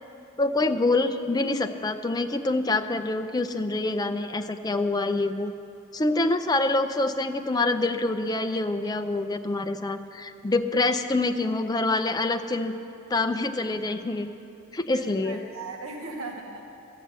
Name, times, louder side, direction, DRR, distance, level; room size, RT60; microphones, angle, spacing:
voice 1, 0.4-5.5 5.9-12.7 13.1-14.3 14.7-15.4, left 2 dB, 15° left, 7 dB, 0.4 m, -26 dB
voice 2, 14.9-16.7, right 3 dB, 70° right, 2 dB, 0.9 m, -37 dB
12.5 x 7.4 x 8.0 m, 2.7 s
head